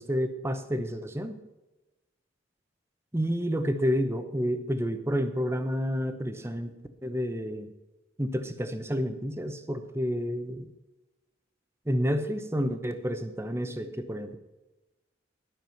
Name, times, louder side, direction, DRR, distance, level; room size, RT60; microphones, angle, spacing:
voice 1, 0.0-1.4 3.1-7.7 8.2-10.7 11.9-14.4, equal, 15° right, 9 dB, 0.8 m, -30 dB
12.0 x 6.1 x 7.1 m, 1.1 s
head